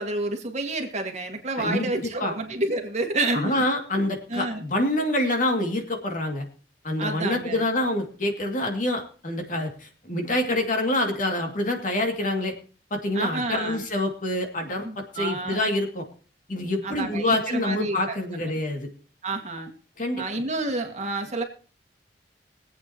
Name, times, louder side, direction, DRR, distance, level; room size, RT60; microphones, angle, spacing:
voice 1, 0.0-3.7 4.3-4.6 7.0-7.6 13.1-13.8 14.8-15.7 16.8-18.6 19.2-19.7 20.2-21.4, right 2 dB, 40° right, 4 dB, 1.9 m, -29 dB
voice 2, 1.6-2.4 3.3-6.4 6.8-12.5 12.9-16.0 16.5-18.9 20.0-20.4, left 1 dB, 50° left, 3 dB, 2.4 m, -26 dB
23.5 x 8.5 x 3.0 m, 0.39 s
head